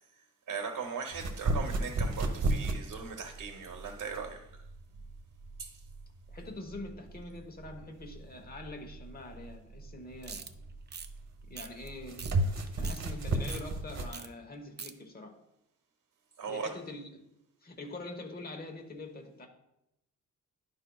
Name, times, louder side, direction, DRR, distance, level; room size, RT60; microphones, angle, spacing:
voice 1, 0.5-4.5 5.6-5.7 16.4-16.7, right 5 dB, 75° right, 3 dB, 0.9 m, -38 dB
sound 1, 1.1-14.2, right 2 dB, 55° right, 1.1 m, -34 dB
voice 2, 6.3-10.4 11.5-12.3 12.8-15.4 16.5-17.2 17.6-19.5, left 2 dB, 30° left, 3 dB, 1.0 m, -44 dB
sound 2, 10.2-10.5 10.9-11.1 11.6-11.9 12.2-12.3 12.7-13.0 13.5-13.6 14.1-14.3 14.5-14.9, right 6 dB, 35° right, 0.5 m, -43 dB
11.5 x 5.3 x 2.3 m, 0.84 s
wide cardioid pair, 120°, 32 cm